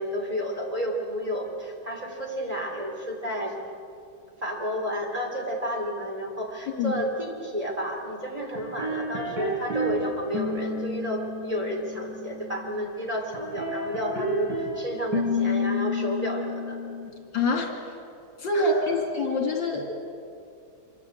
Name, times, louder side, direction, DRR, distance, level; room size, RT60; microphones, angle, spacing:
voice 1, 0.0-3.5 4.4-16.8 18.5-18.8, equal, 15° right, -1 dB, 3.7 m, -31 dB
voice 2, 6.7-7.0 17.3-17.8 18.4-19.8, left 2 dB, 65° left, 2 dB, 3.5 m, -25 dB
sound 1, 8.5-10.0 10.3-12.9 13.3-14.7 15.1-17.1, left 2 dB, 60° right, 6.9 m, -30 dB
26.0 x 25.0 x 8.1 m, 2.5 s
omnidirectional pair, 2.2 m